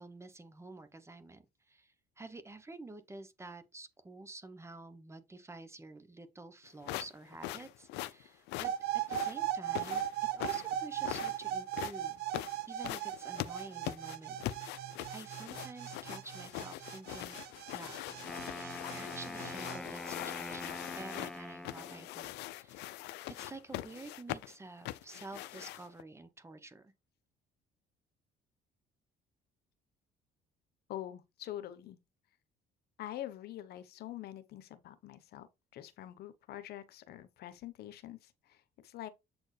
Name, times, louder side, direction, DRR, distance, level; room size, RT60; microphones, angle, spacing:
voice 1, 0.0-12.3 12.6-17.4 17.7-18.2 18.6-26.9, right 2 dB, 15° right, 0.9 m, -50 dB
sound 1, 6.8-26.0, left 16 dB, 85° left, 0.5 m, -42 dB
sound 2, 8.6-19.8, right 11 dB, 70° right, 0.6 m, -38 dB
Wind instrument woodwind instrument, 18.1-22.1, left 1 dB, 5° left, 0.5 m, -44 dB
voice 2, 30.9-32.0 33.0-35.5 35.7-39.1, left 12 dB, 70° left, 1.0 m, -45 dB
7.7 x 4.4 x 3.2 m
cardioid pair, 110°, 17 cm